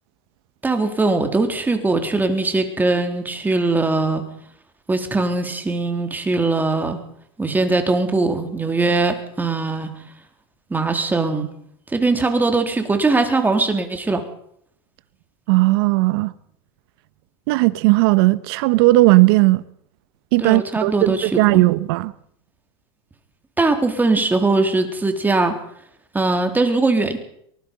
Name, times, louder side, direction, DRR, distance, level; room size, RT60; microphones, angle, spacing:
voice 1, 0.6-4.2 4.9-7.0 7.4-9.9 10.7-11.5 11.9-14.2 20.4-21.6 23.6-25.5 26.1-27.2, right 3 dB, 15° right, 3.8 m, -20 dB
voice 2, 15.5-16.3 17.5-19.6 20.3-22.1, right 20 dB, 65° right, 1.2 m, -16 dB
23.5 x 20.5 x 5.5 m
hypercardioid pair, 105°, 14 cm